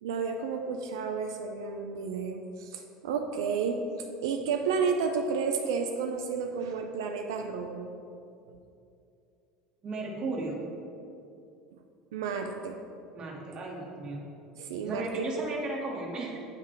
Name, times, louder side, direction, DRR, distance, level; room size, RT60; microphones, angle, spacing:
voice 1, 0.0-7.9 12.1-12.8 14.6-15.5, right 5 dB, 85° right, 4 dB, 0.4 m, -31 dB
voice 2, 9.8-10.6 13.1-14.2 14.8-16.4, right 2 dB, 35° right, -2 dB, 1.1 m, -35 dB
8.3 x 3.2 x 3.8 m, 2.6 s
supercardioid pair, 90°, 2 cm